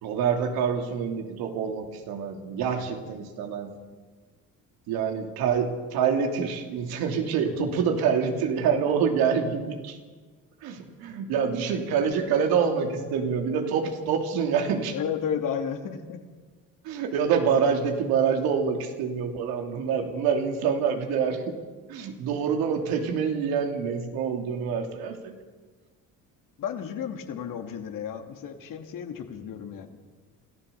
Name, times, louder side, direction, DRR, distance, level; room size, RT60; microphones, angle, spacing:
voice 1, 0.0-3.7 4.9-10.0 10.6-15.0 16.8-21.5 21.9-25.3, right 6 dB, 80° right, 4 dB, 3.0 m, -26 dB
voice 2, 14.9-16.2 26.6-30.0, left 8 dB, 60° left, 5 dB, 2.6 m, -33 dB
26.5 x 14.5 x 7.0 m, 1.4 s
supercardioid pair, 85°, 36 cm